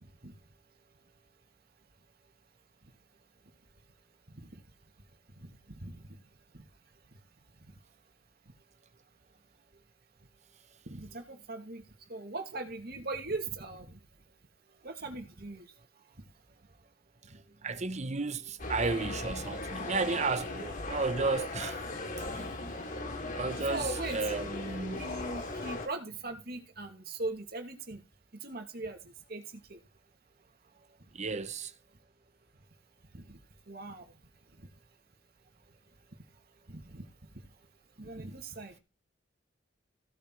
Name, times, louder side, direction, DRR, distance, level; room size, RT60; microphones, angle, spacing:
voice 1, 4.3-4.6 5.4-6.2 6.5-6.6 7.6-7.7 10.9-11.8 12.1-14.0 14.8-15.7 17.3-17.4 23.7-24.3 24.9-28.0 28.4-29.8 33.1-33.4 33.7-34.1 34.6-34.7 36.7-37.1 38.0-38.8, right 3 dB, 55° right, 2.5 m, -40 dB
voice 2, 17.6-21.8 22.3-22.5 23.3-25.0 31.1-31.7, right 3 dB, 35° right, 1.0 m, -33 dB
sound 1, 18.6-25.9, left 2 dB, 45° left, 3.2 m, -38 dB
16.0 x 6.8 x 4.8 m
head